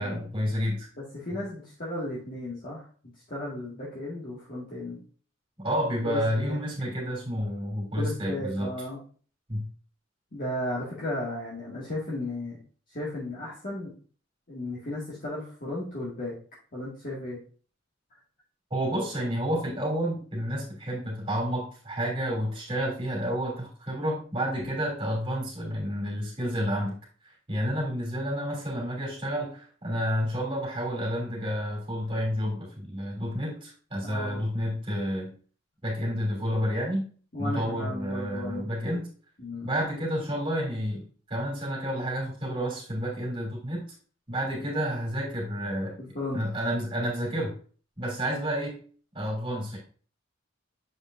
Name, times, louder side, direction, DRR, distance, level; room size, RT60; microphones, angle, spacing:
voice 1, 0.0-0.9 5.6-8.7 9.5-9.7 18.7-27.0 27.2-35.3 35.8-37.1 37.4-39.1 39.6-43.8 44.3-46.0 46.3-47.5 48.0-48.8 49.1-49.8, equal, 25° right, -3 dB, 2.7 m, -30 dB
voice 2, 1.0-2.9 3.3-5.0 6.0-6.6 8.0-9.0 10.3-12.6 12.9-13.9 14.5-16.3 16.7-17.4 34.0-34.4 37.3-38.7 39.4-39.7 46.0-46.4, left 1 dB, 45° left, -7 dB, 1.9 m, -35 dB
7.0 x 5.1 x 2.6 m, 0.41 s
head